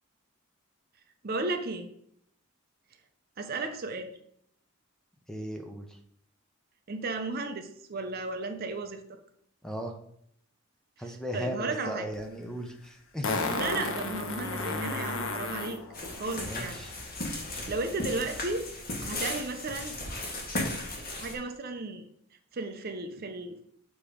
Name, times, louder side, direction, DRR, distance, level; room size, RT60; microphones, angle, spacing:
voice 1, 1.2-1.9 3.4-4.1 6.9-9.2 11.0-12.1 13.5-15.8 16.2-16.8 17.7-18.7 19.0-20.0 21.1-22.0 22.5-23.6, right 3 dB, 45° right, 7 dB, 0.5 m, -34 dB
voice 2, 5.3-6.0 9.6-9.9 11.0-13.5 16.4-16.9, equal, 5° left, 4 dB, 0.6 m, -37 dB
Fart, 12.1-12.2 13.2-15.8 18.2-18.3, left 3 dB, 65° left, 0.8 m, -32 dB
sound 1, 13.6-17.4, left 2 dB, 85° left, 1.1 m, -43 dB
sound 2, 15.9-21.4, left 2 dB, 45° left, 1.2 m, -36 dB
6.9 x 2.9 x 4.9 m, 0.70 s
head